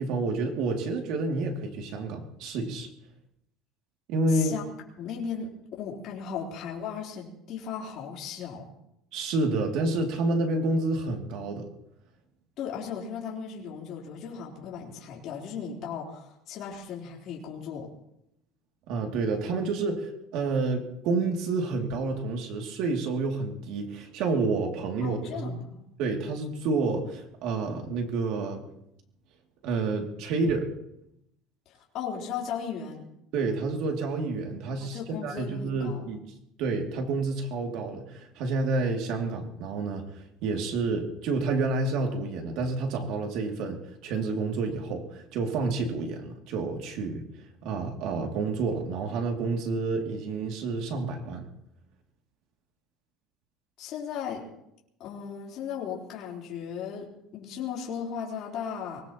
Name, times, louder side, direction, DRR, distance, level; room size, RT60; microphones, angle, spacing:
voice 1, 0.0-2.9 4.1-4.6 9.1-11.7 18.9-25.5 26.0-28.6 29.6-30.7 33.3-36.2 36.6-47.2 47.6-51.4, right 3 dB, 65° right, 2 dB, 2.7 m, -29 dB
voice 2, 4.3-4.6 5.0-5.5 5.8-8.6 12.6-17.9 25.0-25.8 31.7-33.1 34.8-36.1 53.8-54.4 55.0-57.1 57.3-59.0, left 7 dB, 50° left, -3 dB, 3.9 m, -36 dB
24.0 x 19.0 x 3.1 m, 0.82 s
cardioid pair, 145°, 0 cm